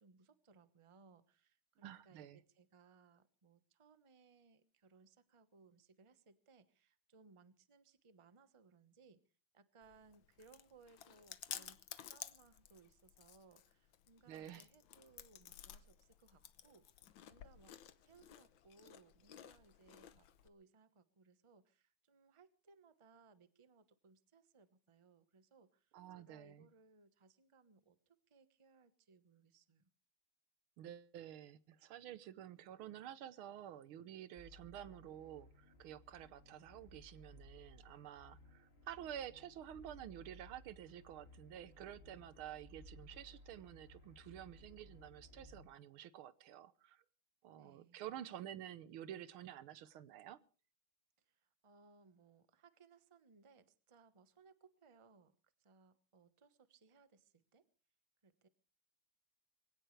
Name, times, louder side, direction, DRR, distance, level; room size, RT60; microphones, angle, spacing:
voice 1, 0.0-9.2 9.5-17.0 17.3-17.8 18.0-29.9 47.6-48.0 51.2-57.7 58.2-58.5, right 4 dB, 25° right, 0.8 m, -66 dB
voice 2, 1.8-2.4 14.3-14.7 25.9-26.7 30.8-47.0 47.4-50.4, right 11 dB, 90° right, 1.8 m, -51 dB
Chewing mastication, 9.8-20.5, left 11 dB, 70° left, 1.6 m, -54 dB
sound 1, 34.4-45.6, left 1 dB, 30° left, 3.9 m, -60 dB
23.0 x 17.0 x 3.2 m
omnidirectional pair, 2.2 m